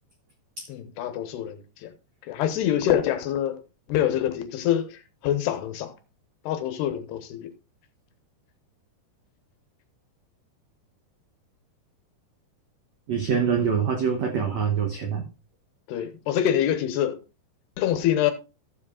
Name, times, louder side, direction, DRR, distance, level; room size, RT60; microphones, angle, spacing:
voice 1, 0.7-1.9 2.2-3.6 3.9-6.0 6.4-7.5 15.9-17.2 17.8-18.3, left 11 dB, 75° left, 2.9 m, -25 dB
voice 2, 13.1-15.2, right 6 dB, 85° right, 1.5 m, -25 dB
15.0 x 7.2 x 2.4 m
omnidirectional pair, 4.9 m